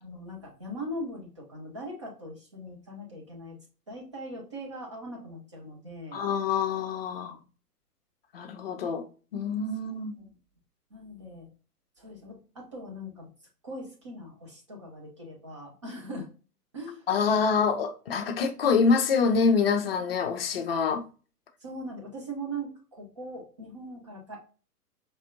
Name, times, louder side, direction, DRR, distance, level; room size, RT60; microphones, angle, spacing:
voice 1, 0.0-3.5 3.9-6.2 10.9-11.5 12.0-13.3 13.6-16.3 16.7-17.0 21.6-24.4, right 1 dB, 20° right, 0.4 m, -40 dB
voice 2, 6.1-7.4 8.3-9.0 9.3-10.2 17.1-21.0, left 5 dB, 40° left, 0.6 m, -26 dB
5.3 x 2.5 x 2.4 m
figure-of-eight pair, 115°, 47 cm